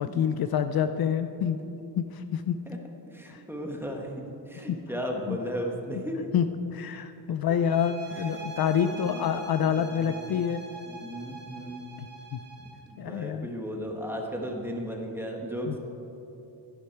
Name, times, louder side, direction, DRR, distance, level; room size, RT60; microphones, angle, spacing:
voice 1, 0.0-1.6 2.0-2.6 3.3-3.4 4.7-4.8 5.3-5.4 6.3-6.4 6.7-10.6 12.0-12.4 13.0-13.5 15.7-15.8, left 8 dB, 60° left, 10 dB, 0.5 m, -27 dB
voice 2, 3.1-6.3 8.8-9.2 9.7-10.3 10.9-11.8 12.6-15.8, equal, 5° right, 1 dB, 1.1 m, -35 dB
sound 1, 7.6-12.9, right 2 dB, 25° right, 1.4 m, -43 dB
11.5 x 10.5 x 4.5 m, 2.8 s
wide cardioid pair, 175°, 43 cm